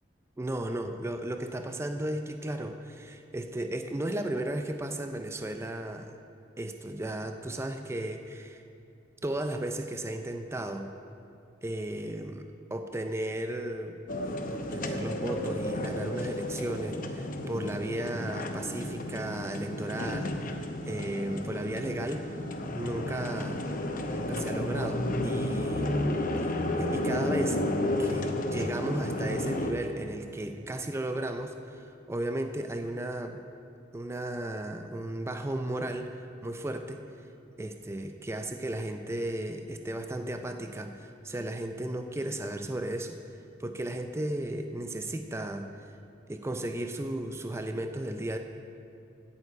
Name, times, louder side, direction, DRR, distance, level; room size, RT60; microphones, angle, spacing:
voice 1, 0.4-6.1 6.6-8.6 9.2-10.9 11.6-14.0 14.2-22.4 22.7-23.6 24.1-26.1 26.4-27.6 28.0-33.4 33.9-37.0 37.6-43.2 43.6-45.7 46.3-48.4, right 1 dB, 15° right, 6 dB, 0.4 m, -35 dB
sound 1, 14.1-29.7, left 1 dB, 45° left, 0.8 m, -32 dB
16.0 x 7.1 x 4.7 m, 2.7 s
head